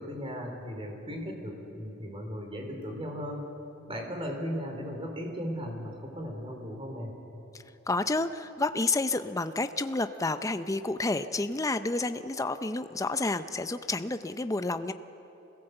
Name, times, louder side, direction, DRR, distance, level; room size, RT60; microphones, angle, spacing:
voice 1, 0.0-3.5 3.9-7.2, equal, 30° right, 2 dB, 3.6 m, -37 dB
voice 2, 7.9-14.9, left 2 dB, 15° left, 10 dB, 0.6 m, -30 dB
25.5 x 17.0 x 7.9 m, 3.0 s
head